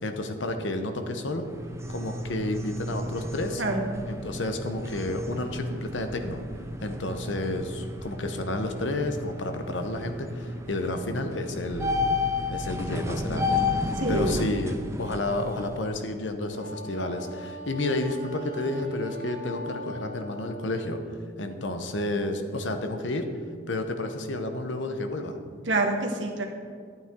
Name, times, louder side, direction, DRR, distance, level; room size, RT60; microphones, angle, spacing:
voice 1, 0.0-1.5 1.9-3.6 4.1-6.4 6.8-11.9 12.5-13.6 14.1-21.0 21.4-23.3 23.7-25.4, left 2 dB, 80° left, 6 dB, 0.9 m, -31 dB
sound 1, 1.4-15.8, left 2 dB, 15° right, 0.5 m, -32 dB
voice 2, 14.0-14.4 25.6-26.5, right 2 dB, 80° right, 2 dB, 1.3 m, -26 dB
Wind instrument woodwind instrument, 16.5-20.8, equal, 50° right, 1.5 m, -41 dB
11.5 x 9.0 x 3.8 m, 2.1 s
head